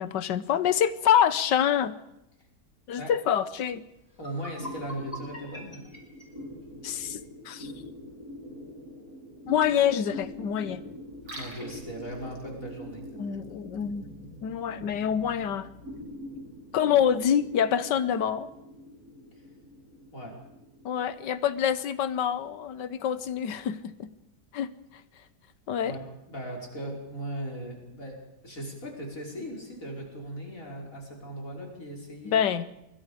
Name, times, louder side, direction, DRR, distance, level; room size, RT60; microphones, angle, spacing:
voice 1, 0.0-1.9 2.9-3.8 6.8-7.2 7.4-7.7 9.4-10.8 13.2-14.0 14.4-15.7 16.7-18.5 20.8-24.1 24.5-24.7 25.7-26.0 32.2-32.7, left 9 dB, 85° left, 15 dB, 1.6 m, -26 dB
sound 1, 4.1-7.2, equal, 20° left, 4.9 m, -44 dB
voice 2, 4.2-5.8 11.3-13.0 20.1-20.3 25.8-28.2 28.4-32.4, right 1 dB, 50° left, 0 dB, 5.8 m, -38 dB
sound 2, 4.6-23.3, equal, 60° right, 6.4 m, -44 dB
Liquid, 11.1-16.1, equal, 90° right, 6.3 m, -49 dB
25.0 x 22.0 x 5.1 m, 0.86 s
omnidirectional pair, 1.8 m